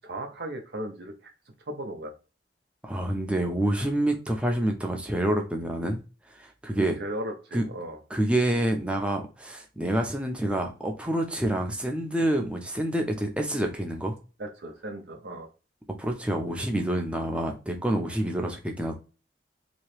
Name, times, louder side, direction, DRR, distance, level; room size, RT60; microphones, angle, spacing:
voice 1, 0.0-1.3 1.7-2.1 3.4-3.5 6.7-8.0 14.4-15.5, right 1 dB, 60° right, 0.6 m, -36 dB
voice 2, 2.8-6.0 6.4-7.0 7.5-7.7 8.1-14.2 16.0-18.9, right 1 dB, 5° right, 0.6 m, -27 dB
3.0 x 2.8 x 3.1 m
head